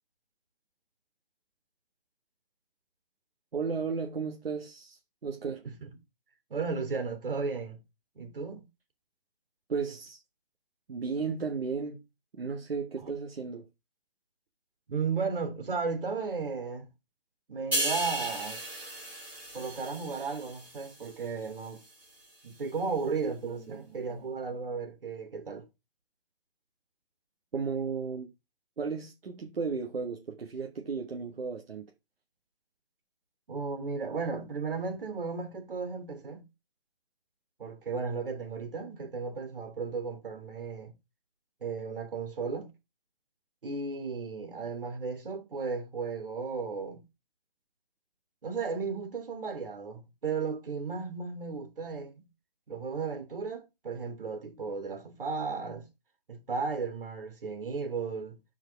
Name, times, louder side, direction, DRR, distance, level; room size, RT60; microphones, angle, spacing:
voice 1, 3.5-5.7 9.7-10.2 10.9-12.0 12.3-13.7 27.5-28.3 28.8-31.9, right 5 dB, 80° right, 1.6 m, -34 dB
voice 2, 6.5-7.8 8.1-8.7 13.0-13.1 14.9-16.9 17.5-18.6 19.5-21.8 22.4-25.6 33.5-36.4 37.6-40.9 41.6-42.7 43.6-47.0 48.4-52.2 52.7-55.9 56.3-58.4, right 4 dB, 65° right, 3.1 m, -35 dB
sound 1, 17.7-21.2 21.6-21.9, right 2 dB, 5° right, 3.1 m, -35 dB
12.5 x 4.9 x 3.4 m
hypercardioid pair, 175°, 29 cm